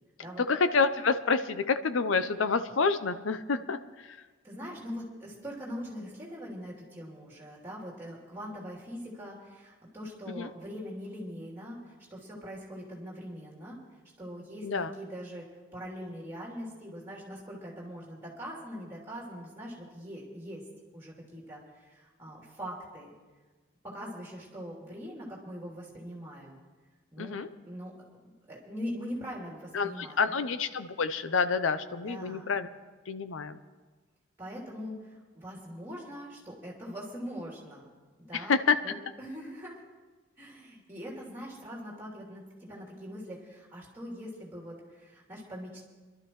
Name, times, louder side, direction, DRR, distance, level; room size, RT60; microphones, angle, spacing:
voice 1, 0.4-4.2 10.3-10.5 14.6-14.9 27.2-27.5 29.7-32.7 33.1-33.6 38.3-38.8, left 4 dB, 80° left, 11 dB, 0.6 m, -28 dB
voice 2, 4.4-13.8 14.2-20.6 20.9-23.1 23.8-26.6 27.1-27.4 27.7-27.9 28.2-30.4 32.1-32.5 34.4-37.9 38.2-38.5 38.8-39.8 40.4-45.8, equal, 10° right, -4 dB, 3.0 m, -42 dB
24.0 x 12.0 x 3.1 m, 1.3 s
head